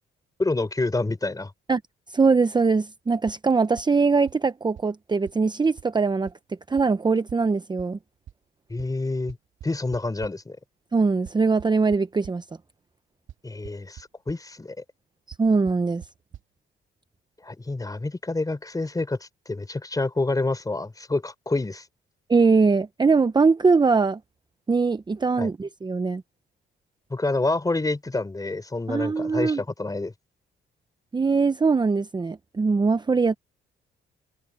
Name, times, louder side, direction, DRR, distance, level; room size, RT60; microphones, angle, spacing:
voice 1, 0.4-1.5 8.7-9.4 9.6-10.6 13.4-14.8 17.4-21.9 25.4-25.5 27.1-30.1, left 2 dB, 20° left, 4.7 m, -28 dB
voice 2, 2.1-6.3 6.7-8.0 10.9-12.4 15.4-16.0 22.3-24.2 24.7-26.2 28.9-29.6 31.1-33.4, right 4 dB, 20° right, 0.8 m, -21 dB
sound 1, 3.3-3.4 3.8-3.9 4.3-4.4 4.8-4.9 5.3-5.4 5.8-5.9 6.3-6.4 6.8-6.9 7.3-7.4 7.8-7.9 8.3-8.4 8.8-8.9 9.3-10.3 11.3-12.3 13.3-13.4 13.6-14.0 14.3-14.4 15.3-15.4 15.7-15.8 16.0-16.1 16.3-16.4, right 10 dB, 70° right, 3.3 m, -42 dB
cardioid pair, 90°, 20 cm